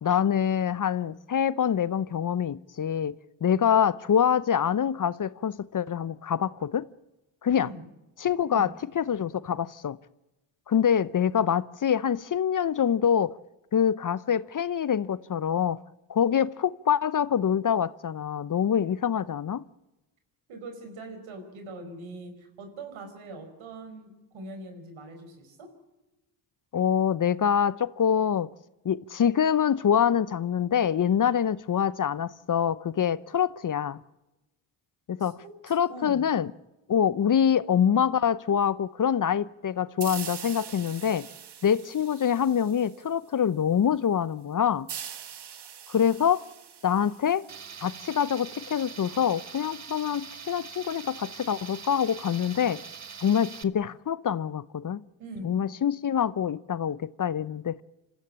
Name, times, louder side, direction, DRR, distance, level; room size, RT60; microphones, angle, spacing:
voice 1, 0.0-3.2 3.4-6.9 7.4-7.7 8.2-8.7 8.9-10.0 10.7-13.3 13.7-15.8 16.1-19.6 26.7-28.5 28.8-34.0 35.1-35.4 35.7-36.5 36.9-41.3 41.6-44.9 45.9-46.4 46.8-47.4 47.8-52.8 53.2-55.0 55.4-57.8, left 8 dB, 40° left, 0.8 m, -25 dB
voice 2, 8.4-8.7 20.5-25.7 35.2-36.3 55.2-55.6, right 2 dB, 75° right, 4.9 m, -42 dB
sound 1, 40.0-43.4 44.9-48.4, right 8 dB, 55° right, 1.6 m, -43 dB
Tools, 47.5-53.6, right 6 dB, 35° right, 1.3 m, -43 dB
27.0 x 15.0 x 8.7 m
supercardioid pair, 50°, 49 cm